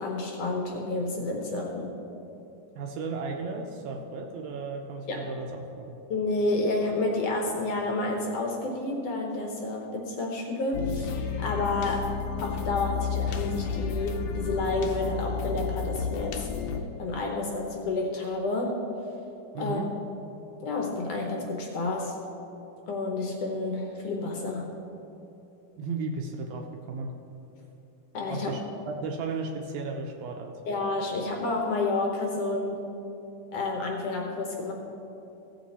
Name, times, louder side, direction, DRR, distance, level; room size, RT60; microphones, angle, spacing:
voice 1, 0.0-2.0 5.1-5.3 6.1-16.5 17.0-18.8 19.6-19.8 20.6-22.1 22.8-24.8 28.1-28.5 30.6-33.0 33.5-34.7, left 2 dB, 65° left, 1 dB, 1.7 m, -30 dB
voice 2, 2.8-5.9 19.5-19.9 25.8-27.1 28.3-30.6, right 4 dB, 75° right, 2 dB, 2.0 m, -35 dB
sound 1, 10.7-16.8, left 6 dB, 85° left, 2.1 m, -32 dB
15.5 x 7.5 x 4.2 m, 2.9 s
omnidirectional pair, 3.5 m